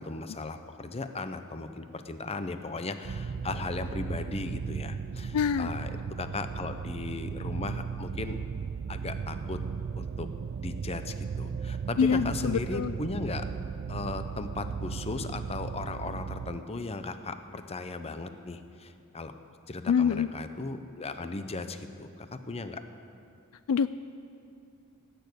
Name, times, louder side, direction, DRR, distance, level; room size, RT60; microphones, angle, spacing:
voice 1, 0.0-8.4 8.9-9.6 10.0-10.3 10.6-13.5 13.9-19.3 19.7-22.8, left 3 dB, 30° left, 9 dB, 0.7 m, -37 dB
sound 1, 3.0-16.6, right 6 dB, 40° right, 0.3 m, -36 dB
voice 2, 5.3-5.7 12.0-12.9 19.9-20.3 23.7-23.9, left 6 dB, 70° left, 13 dB, 0.4 m, -25 dB
18.5 x 6.9 x 8.1 m, 2.5 s
head